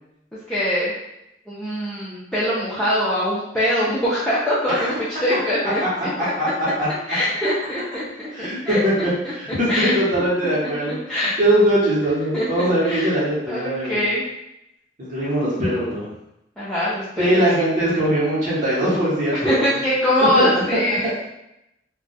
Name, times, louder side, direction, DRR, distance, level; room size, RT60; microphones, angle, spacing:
voice 1, 0.5-0.9 1.5-6.3 7.1-9.3 9.7-10.2 10.6-11.3 12.3-13.1 13.5-14.2 16.6-17.4 19.4-21.2, left 1 dB, 5° left, -11 dB, 0.5 m, -23 dB
voice 2, 8.3-14.0 15.0-16.1 17.2-19.8 20.3-20.8, right 1 dB, 45° right, -9 dB, 1.0 m, -21 dB
2.3 x 2.2 x 3.9 m, 0.86 s
head